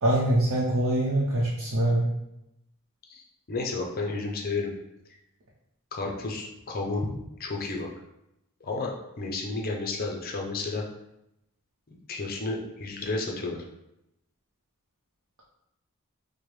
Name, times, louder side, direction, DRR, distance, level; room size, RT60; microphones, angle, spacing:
voice 1, 0.0-2.1, right 1 dB, 75° right, -5 dB, 0.7 m, -24 dB
voice 2, 3.1-4.7 5.9-7.9 8.6-10.8 11.9-13.6, left 3 dB, 45° left, 0 dB, 0.6 m, -32 dB
4.9 x 2.1 x 3.1 m, 0.87 s
head